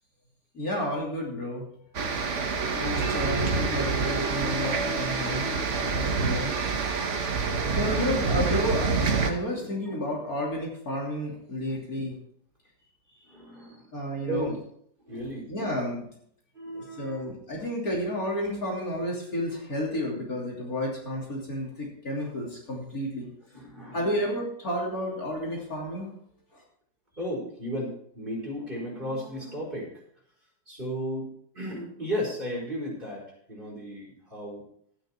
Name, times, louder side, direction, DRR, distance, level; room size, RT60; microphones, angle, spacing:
voice 1, 0.5-1.6 2.6-5.5 5.9-6.5 7.7-12.1 13.9-14.5 15.5-16.1 16.7-23.3 23.8-26.1, equal, 50° left, -3 dB, 3.6 m, -31 dB
sound 1, 1.9-9.3, right 4 dB, 45° right, 1.3 m, -27 dB
voice 2, 7.4-8.6 9.8-10.2 11.7-11.8 13.1-13.9 14.3-14.6 15.0-15.4 16.5-17.3 17.6-17.7 23.5-24.2 27.1-29.9 30.7-31.3 31.5-34.6, equal, 30° right, -3 dB, 4.6 m, -35 dB
12.5 x 9.5 x 4.4 m, 0.65 s
omnidirectional pair, 1.9 m